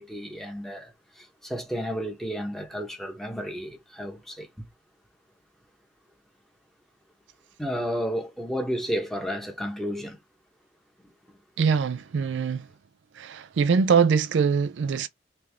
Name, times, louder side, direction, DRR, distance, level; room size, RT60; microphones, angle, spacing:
voice 1, 0.0-4.7 7.6-10.2, equal, ahead, 1.1 m, -32 dB
voice 2, 11.6-12.7 13.2-15.1, right 6 dB, 85° right, 0.4 m, -23 dB
3.4 x 3.3 x 3.5 m
head